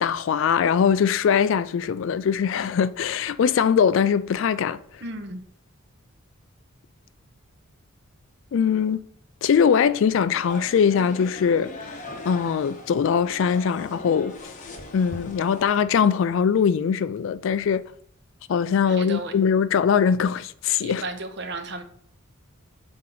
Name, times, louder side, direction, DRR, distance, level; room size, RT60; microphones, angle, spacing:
voice 1, 0.0-4.8 8.5-9.0 9.4-11.9 12.2-14.3 14.9-17.8 18.5-21.0, left 7 dB, 60° left, 0.3 m, -21 dB
voice 2, 5.0-5.4 18.9-19.3 20.8-21.8, right 2 dB, 55° right, 0.8 m, -34 dB
sound 1, 10.3-15.6, left 2 dB, 35° left, 0.7 m, -40 dB
7.4 x 4.4 x 3.8 m
head